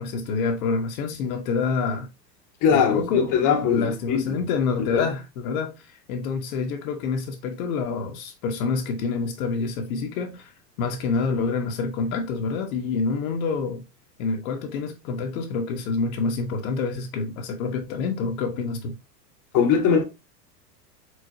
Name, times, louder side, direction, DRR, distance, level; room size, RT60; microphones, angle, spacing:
voice 1, 0.0-2.1 2.7-10.5 10.8-13.8 14.2-18.9, left 4 dB, 55° left, 1.2 m, -27 dB
voice 2, 2.6-4.4 4.9-5.0 19.5-20.0, left 7 dB, 40° left, 1.2 m, -21 dB
4.8 x 4.0 x 2.7 m
hypercardioid pair, 105°, 49 cm